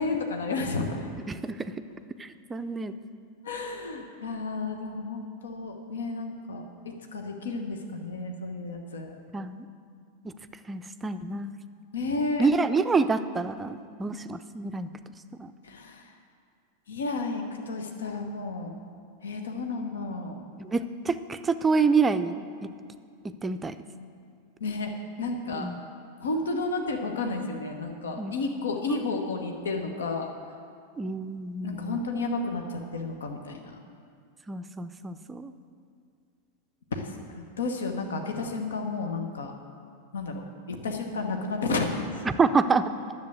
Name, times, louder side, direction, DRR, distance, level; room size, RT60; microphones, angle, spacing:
voice 1, 0.0-1.1 3.4-9.2 11.9-12.5 15.6-16.1 16.9-18.7 19.2-20.4 24.6-25.7 26.2-30.3 31.6-33.8 36.9-39.5 40.1-42.1, left 3 dB, 65° left, 4 dB, 1.1 m, -32 dB
voice 2, 2.2-2.9 9.3-9.6 10.2-10.3 10.7-11.6 12.4-14.9 15.4-15.5 20.6-22.7 23.2-23.7 25.6-25.9 28.2-28.3 28.9-29.0 31.0-32.0 34.5-35.5 42.4-42.9, right 4 dB, 15° right, 11 dB, 0.5 m, -27 dB
10.5 x 7.5 x 7.8 m, 2.3 s
figure-of-eight pair, 90°, 0 cm